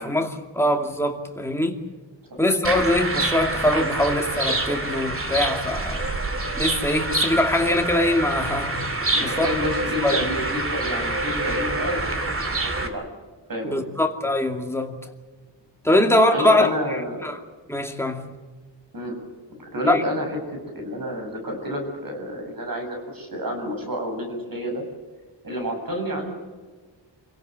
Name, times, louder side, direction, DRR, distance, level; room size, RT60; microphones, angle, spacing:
voice 1, 0.0-1.8 2.4-6.1 6.6-8.8 9.2-9.5 10.0-10.2 13.6-15.0 15.8-17.4 17.7-18.3 19.9-20.0, left 1 dB, 5° left, 2.4 m, -22 dB
sound 1, 2.6-12.9, right 2 dB, 30° right, 2.5 m, -26 dB
voice 2, 9.1-13.1 13.5-13.8 16.3-17.3 18.9-19.2 19.6-24.8 25.4-26.3, equal, 50° right, 7.6 m, -29 dB
28.5 x 17.0 x 8.0 m
wide cardioid pair, 160°, 45 cm